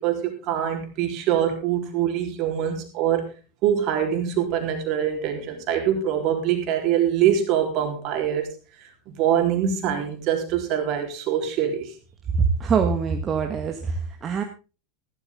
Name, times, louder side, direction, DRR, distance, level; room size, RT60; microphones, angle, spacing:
voice 1, 0.0-3.3 3.6-8.5 9.1-11.9, right 9 dB, 50° right, 4 dB, 3.8 m, -24 dB
voice 2, 12.4-14.4, right 5 dB, 30° right, 5 dB, 1.5 m, -23 dB
14.5 x 12.5 x 3.6 m, 0.32 s
hypercardioid pair, 90°, 0 cm